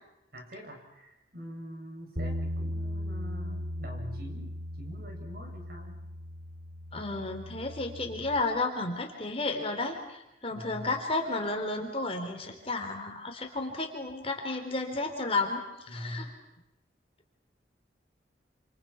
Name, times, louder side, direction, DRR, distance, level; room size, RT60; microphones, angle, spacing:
voice 1, 0.3-6.0 10.5-11.0 15.9-16.3, equal, 55° right, 2 dB, 7.1 m, -44 dB
Bass guitar, 2.2-8.4, equal, 70° right, 3.6 m, -37 dB
voice 2, 6.9-16.3, left 3 dB, 30° left, 3 dB, 3.8 m, -32 dB
28.5 x 28.5 x 5.9 m, 0.89 s
head